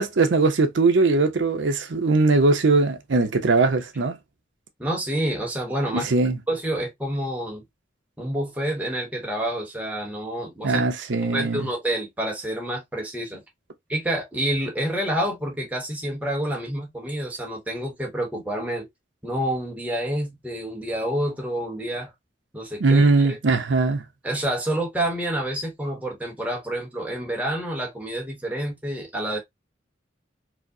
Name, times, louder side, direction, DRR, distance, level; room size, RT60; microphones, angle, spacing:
voice 1, 0.0-4.2 5.9-6.4 10.6-11.7 22.8-24.0, right 3 dB, 75° right, 0.6 m, -20 dB
voice 2, 4.8-6.1 6.5-7.6 8.2-10.8 11.3-13.4 13.9-18.9 19.2-22.1 22.5-23.4 24.2-29.4, right 1 dB, 10° right, 1.0 m, -28 dB
4.8 x 2.0 x 2.7 m
head